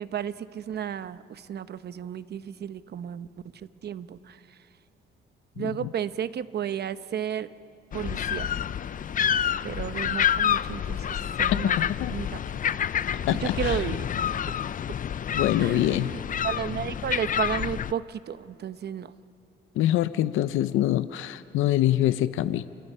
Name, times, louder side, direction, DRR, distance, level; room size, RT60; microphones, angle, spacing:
voice 1, 0.0-3.3 3.8-4.4 5.6-7.5 7.9-8.5 9.6-11.7 12.1-12.3 13.4-14.3 15.6-19.1, right 9 dB, 55° right, 13 dB, 0.9 m, -33 dB
voice 2, 5.6-5.9 11.5-12.1 13.3-13.9 15.3-16.1 19.7-22.7, left 13 dB, 85° left, 13 dB, 0.6 m, -25 dB
sound 1, 7.9-17.9, left 9 dB, 40° left, 0.5 m, -28 dB
28.5 x 28.0 x 5.6 m, 2.5 s
cardioid pair, 90°, 20 cm